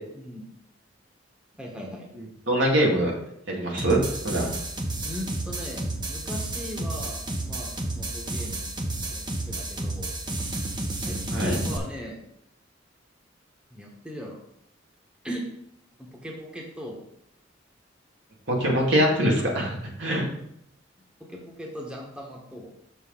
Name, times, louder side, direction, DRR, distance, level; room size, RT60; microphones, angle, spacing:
voice 1, 1.6-2.0 5.0-8.7 9.1-10.1 11.1-12.2 13.7-14.4 15.2-15.4 16.0-17.0 20.1-20.3 21.2-22.7, equal, 5° right, -2 dB, 1.4 m, -38 dB
voice 2, 2.5-3.1 3.5-4.0 4.2-4.6 11.3-11.5 18.5-20.3, right 1 dB, 70° right, -2 dB, 2.2 m, -23 dB
sound 1, 3.8-11.8, right 2 dB, 25° right, 1.0 m, -31 dB
6.7 x 6.6 x 4.0 m, 0.76 s
head